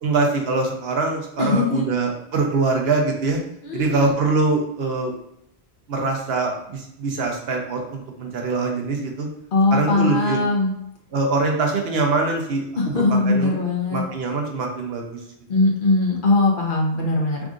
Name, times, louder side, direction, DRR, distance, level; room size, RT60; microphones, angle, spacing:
voice 1, 0.0-3.4 3.7-5.1 5.9-9.3 9.7-10.4 11.1-12.6 12.9-13.5 13.9-15.2, right 3 dB, 70° right, 1 dB, 1.0 m, -23 dB
voice 2, 1.4-1.9 3.6-4.1 9.5-10.8 12.8-14.0 15.5-17.4, left 2 dB, 55° left, -1 dB, 1.0 m, -20 dB
3.6 x 2.5 x 3.7 m, 0.75 s
omnidirectional pair, 1.1 m